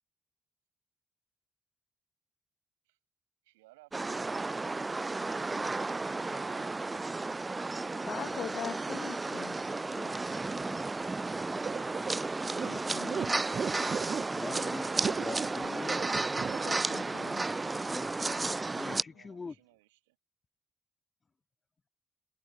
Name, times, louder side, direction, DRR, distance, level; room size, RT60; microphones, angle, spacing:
voice 1, 3.4-4.4 19.0-20.2, right 21 dB, 75° right, 7.1 m, -60 dB
sound 1, 3.9-19.0, right 3 dB, 25° right, 0.4 m, -33 dB
voice 2, 8.1-9.6 9.9-10.1 10.5-10.8 12.6-13.6 14.4-14.5 15.6-16.2 16.6-17.5 18.8-19.0, left 9 dB, 55° left, 0.5 m, -43 dB
sound 2, 11.6-17.0, right 6 dB, 45° right, 1.0 m, -36 dB
voice 3, 14.3-16.2 17.9-18.4 18.8-19.5, left 4 dB, 35° left, 3.0 m, -43 dB
figure-of-eight pair, 40°, 0 cm